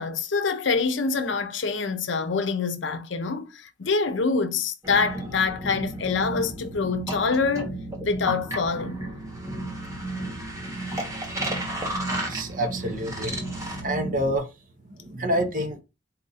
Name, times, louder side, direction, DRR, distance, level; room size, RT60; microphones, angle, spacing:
voice 1, 0.0-7.7 8.0-9.0, left 4 dB, 70° left, 0.6 m, -25 dB
sound 1, 4.8-14.4, right 1 dB, 15° right, 1.0 m, -33 dB
voice 2, 12.3-13.4 13.8-14.5 14.9-15.8, right 1 dB, 45° right, 0.9 m, -27 dB
4.2 x 2.6 x 4.0 m
head